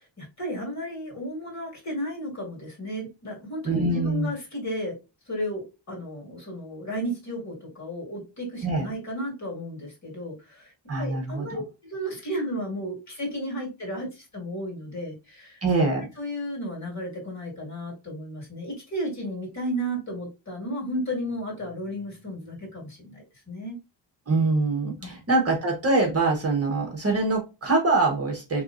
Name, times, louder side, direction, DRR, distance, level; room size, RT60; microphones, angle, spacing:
voice 1, 0.2-5.0 5.3-10.7 11.0-15.6 16.2-23.8 25.0-25.1, equal, 35° left, -2 dB, 2.1 m, -33 dB
voice 2, 3.6-4.3 8.6-8.9 10.9-11.6 15.6-16.1 24.3-28.6, right 3 dB, 30° right, 1 dB, 1.1 m, -24 dB
4.4 x 3.1 x 2.5 m, 0.27 s
wide cardioid pair, 150°, 46 cm